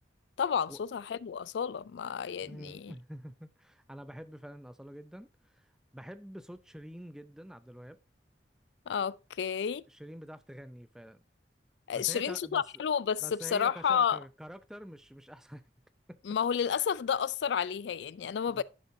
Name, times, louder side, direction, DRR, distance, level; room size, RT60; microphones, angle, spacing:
voice 1, 0.4-2.9 8.9-9.8 11.9-14.2 16.2-18.6, left 7 dB, 80° left, 0.4 m, -31 dB
voice 2, 2.4-5.6 5.9-8.0 9.9-11.2 11.9-12.8 13.2-15.6 16.1-16.2 18.5-18.6, equal, 5° right, 0.4 m, -46 dB
11.0 x 6.6 x 2.7 m
head